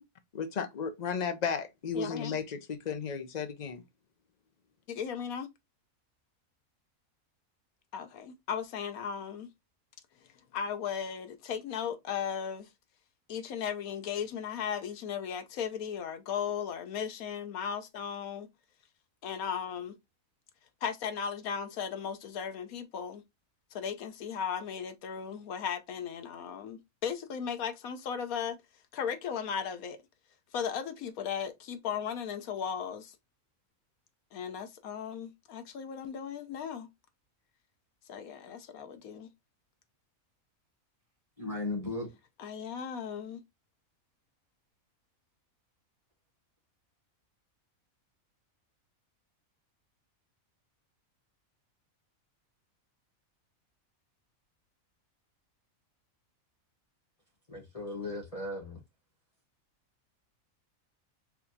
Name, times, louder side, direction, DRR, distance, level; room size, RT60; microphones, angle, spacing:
voice 1, 0.3-3.8, left 6 dB, 45° left, 0.6 m, -34 dB
voice 2, 1.9-2.3 4.9-5.5 7.9-9.5 10.5-12.7 13.3-18.5 19.2-19.9 20.8-23.2 23.7-28.6 28.9-30.0 30.5-33.2 34.3-36.9 38.1-39.3 42.4-43.4, left 7 dB, 90° left, 1.2 m, -36 dB
voice 3, 41.4-42.1 57.5-58.8, left 2 dB, 25° left, 1.3 m, -36 dB
4.7 x 3.3 x 2.7 m
omnidirectional pair, 1.5 m